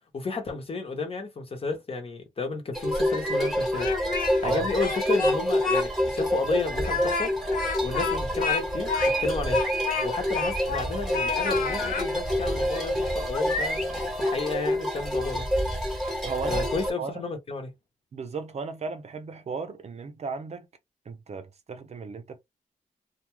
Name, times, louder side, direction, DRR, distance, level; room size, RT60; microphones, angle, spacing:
voice 1, 0.1-3.9 4.4-7.3 7.8-8.9 9.2-9.6 10.0-15.5 16.5-17.7, left 4 dB, 40° left, 1.0 m, -32 dB
sound 1, 2.7-16.9, equal, ahead, 1.1 m, -27 dB
Speech, 3.6-4.5 4.8-5.9 6.2-6.3 6.8-10.9 11.1-12.1, left 5 dB, 75° left, 0.6 m, -30 dB
voice 2, 16.2-16.6 17.0-17.2 18.1-20.7 21.1-22.4, right 4 dB, 50° right, 0.6 m, -35 dB
2.3 x 2.3 x 3.0 m
cardioid pair, 85°, 15 cm